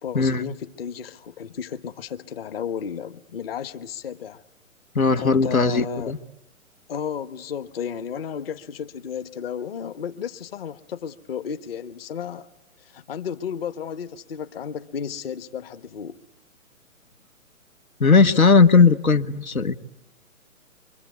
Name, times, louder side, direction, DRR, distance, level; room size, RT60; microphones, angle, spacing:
voice 1, 0.0-4.4 5.2-6.1 6.9-12.5 12.8-16.2, left 8 dB, 45° left, 10 dB, 1.2 m, -33 dB
voice 2, 4.9-6.2 18.0-19.7, left 4 dB, 80° left, 10 dB, 1.4 m, -17 dB
25.5 x 25.0 x 8.3 m, 0.89 s
figure-of-eight pair, 135°, 42 cm